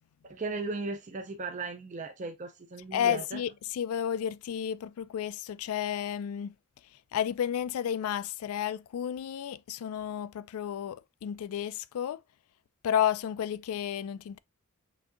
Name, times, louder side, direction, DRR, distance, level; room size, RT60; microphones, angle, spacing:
voice 1, 0.2-3.4, right 3 dB, 35° right, 0.4 m, -36 dB
voice 2, 2.9-6.5 7.1-12.2 12.8-14.4, left 9 dB, 80° left, 0.3 m, -32 dB
6.0 x 2.7 x 2.4 m
head